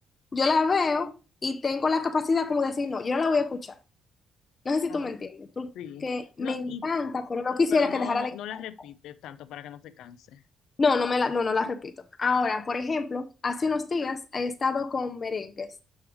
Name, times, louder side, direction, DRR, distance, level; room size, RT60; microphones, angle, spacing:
voice 1, 0.3-1.1 1.4-3.7 4.6-5.7 6.0-8.3 10.8-11.9 12.2-15.7, left 4 dB, 35° left, 0.6 m, -26 dB
voice 2, 5.7-6.1 6.4-6.9 7.7-10.4, left 10 dB, 85° left, 0.5 m, -40 dB
7.2 x 3.2 x 4.8 m
cardioid pair, 90°, 0 cm